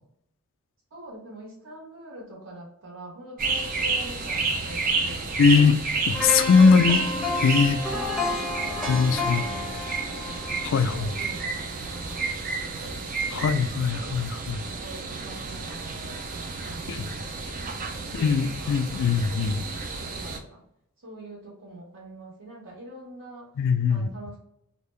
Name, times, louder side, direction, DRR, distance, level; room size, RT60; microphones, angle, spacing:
voice 1, 0.9-6.0 7.9-10.4 10.8-13.0 13.3-14.2 14.7-20.6 21.0-23.6 23.9-24.4, right 1 dB, 60° right, -4 dB, 1.5 m, -44 dB
sound 1, 3.4-20.4, right 4 dB, 40° right, 0.4 m, -31 dB
voice 2, 5.4-5.8 6.1-7.0 7.4-7.8 8.9-9.4 10.6-11.1 13.3-14.6 16.9-17.1 18.1-19.6 23.6-24.1, left 5 dB, 60° left, 10 dB, 0.3 m, -21 dB
sound 2, 6.1-12.2 12.5-12.7, left 2 dB, 5° right, 0.7 m, -31 dB
3.6 x 2.4 x 3.1 m, 0.75 s
head